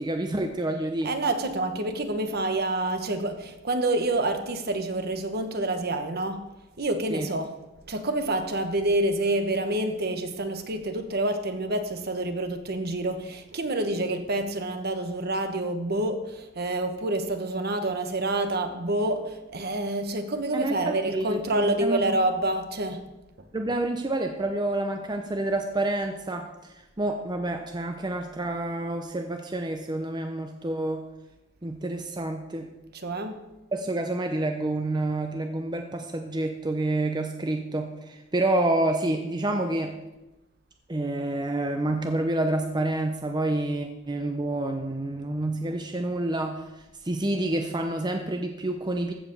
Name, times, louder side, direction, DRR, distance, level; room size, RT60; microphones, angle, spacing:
voice 1, 0.0-1.1 7.1-7.3 20.5-22.1 23.5-26.5 27.0-31.0 31.6-32.7 33.7-39.9 40.9-46.6 47.0-49.1, right 2 dB, 20° right, 4 dB, 0.7 m, -28 dB
voice 2, 1.0-6.4 6.8-7.6 7.9-23.0 32.9-33.4, right 2 dB, 50° right, 7 dB, 1.1 m, -27 dB
15.0 x 5.0 x 6.8 m, 1.0 s
head